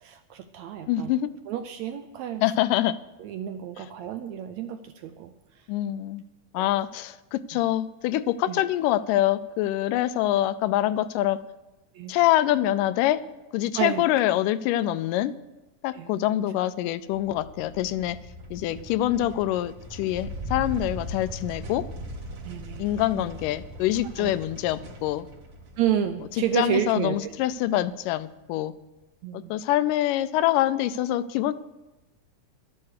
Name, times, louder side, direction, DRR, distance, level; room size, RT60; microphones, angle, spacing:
voice 1, 0.0-1.1 1.5-2.4 3.2-5.7 6.6-6.7 7.5-7.6 8.4-8.6 11.9-12.2 13.8-14.0 15.9-16.1 18.8-18.9 22.4-22.9 23.1-23.3 24.2-24.3 25.8-27.3 29.2-29.5, right 10 dB, 80° right, 8 dB, 1.7 m, -30 dB
voice 2, 0.9-1.3 2.4-2.9 5.7-6.2 6.5-11.4 12.1-13.2 13.5-15.3 15.8-18.2 18.5-21.8 22.8-25.3 26.5-28.7 29.5-31.5, left 13 dB, 85° left, 14 dB, 2.2 m, -25 dB
sound 1, 17.1-27.7, equal, 50° right, 2.1 m, -40 dB
12.0 x 8.7 x 6.5 m, 1.1 s
omnidirectional pair, 3.7 m